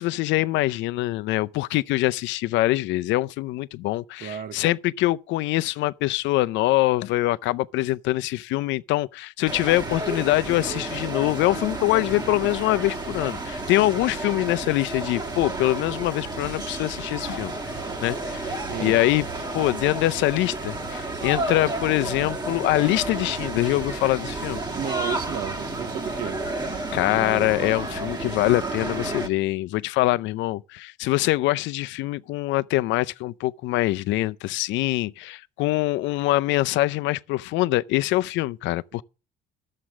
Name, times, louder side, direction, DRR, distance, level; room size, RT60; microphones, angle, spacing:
voice 1, 0.0-19.3 19.5-24.6 26.9-39.0, left 17 dB, 75° left, 0.6 m, -24 dB
voice 2, 4.2-4.7 18.6-18.9 24.7-26.4, right 9 dB, 50° right, 1.1 m, -32 dB
sound 1, 9.5-29.3, right 2 dB, 20° right, 1.5 m, -31 dB
11.5 x 7.6 x 6.0 m
cardioid pair, 115°, 19 cm